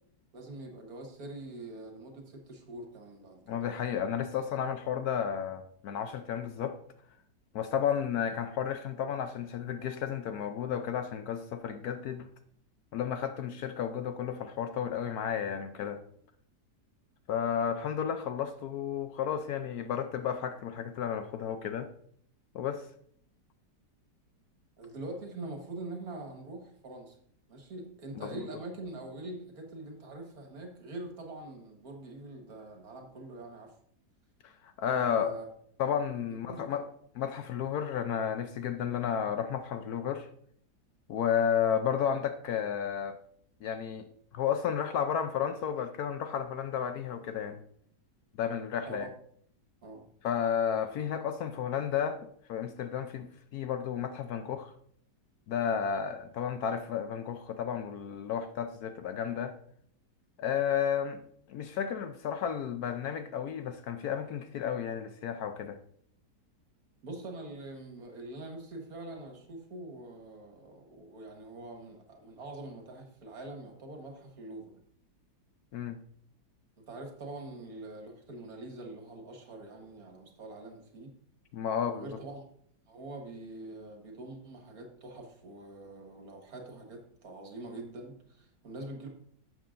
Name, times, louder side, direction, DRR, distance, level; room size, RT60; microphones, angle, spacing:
voice 1, 0.3-3.6 24.8-27.2 27.5-33.7 35.0-35.5 36.3-36.8 48.9-49.1 49.8-50.1 67.0-74.8 76.8-81.1 81.9-82.4 82.9-89.1, right 2 dB, 60° right, 1.9 m, -44 dB
voice 2, 3.5-6.8 7.5-12.3 12.9-16.0 17.3-21.9 22.5-22.9 28.2-28.5 34.4-35.3 35.8-36.9 37.2-40.3 41.1-43.2 43.6-44.1 44.3-47.6 48.4-49.1 50.2-52.2 52.5-54.7 55.5-59.5 60.4-61.2 61.5-65.8 75.7-76.0 81.5-82.1, left 8 dB, 70° left, 1.0 m, -32 dB
12.0 x 7.7 x 2.5 m
omnidirectional pair, 1.9 m